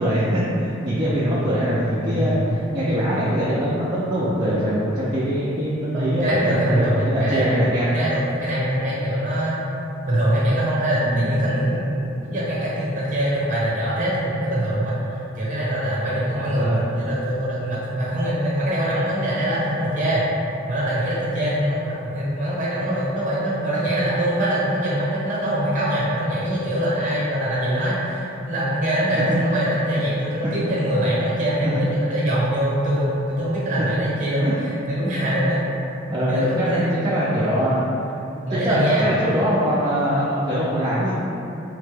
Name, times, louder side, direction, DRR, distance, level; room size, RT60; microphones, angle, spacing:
voice 1, 0.0-7.9 11.1-11.3 16.5-16.9 29.1-29.2 30.6-30.7 31.6-31.8 34.4-34.6 36.1-37.9 38.3-41.1, equal, 25° right, -10 dB, 0.3 m, -22 dB
voice 2, 5.9-7.6 7.9-9.6 10.0-20.3 20.7-35.6 36.3-37.0 38.5-39.2, right 1 dB, 40° right, -7 dB, 0.8 m, -23 dB
3.2 x 2.1 x 3.2 m, 2.9 s
head